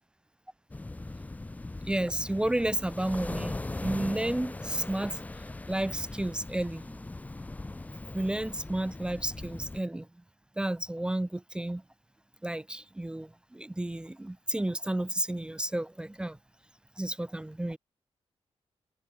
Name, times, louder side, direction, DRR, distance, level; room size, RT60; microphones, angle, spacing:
sound 1, 0.7-9.8, left 2 dB, 15° left, 1.4 m, -40 dB
voice 1, 1.8-5.2 5.7-7.0 8.1-10.1 10.6-11.8 12.4-16.4 17.0-17.8, right 1 dB, 10° right, 0.6 m, -32 dB
wide cardioid pair, 150°, 11 cm